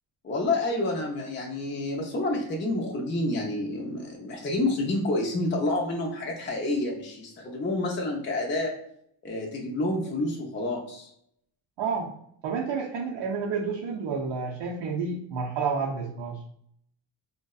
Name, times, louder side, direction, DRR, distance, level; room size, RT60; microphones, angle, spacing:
voice 1, 0.2-8.7 9.2-11.1, left 2 dB, 25° left, -1 dB, 0.5 m, -29 dB
voice 2, 11.8-12.1 12.4-16.4, right 5 dB, 65° right, -2 dB, 0.6 m, -30 dB
2.6 x 2.1 x 2.3 m, 0.70 s
cardioid pair, 85°, 47 cm